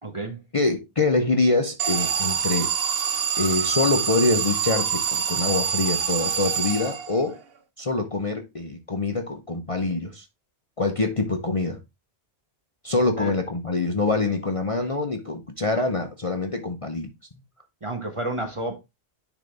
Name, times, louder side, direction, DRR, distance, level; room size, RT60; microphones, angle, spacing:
voice 1, 0.0-0.4 13.2-13.3 17.8-18.8, right 2 dB, 30° right, 1.2 m, -30 dB
voice 2, 0.5-2.7 3.4-7.4 7.8-10.3 10.8-11.8 12.8-17.1, left 3 dB, 35° left, 0.8 m, -25 dB
Alarm, 1.8-7.4, right 7 dB, 60° right, 0.9 m, -25 dB
10.0 x 4.0 x 3.3 m
omnidirectional pair, 1.2 m